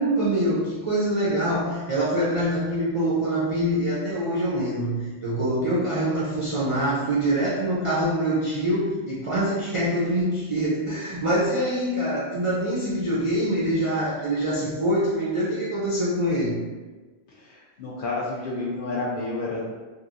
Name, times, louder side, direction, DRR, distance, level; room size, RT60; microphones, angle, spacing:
voice 1, 0.0-16.7, right 1 dB, 50° right, -8 dB, 0.3 m, -25 dB
voice 2, 17.3-19.7, left 2 dB, 60° left, -4 dB, 0.6 m, -30 dB
2.9 x 2.7 x 2.5 m, 1.3 s
omnidirectional pair, 1.3 m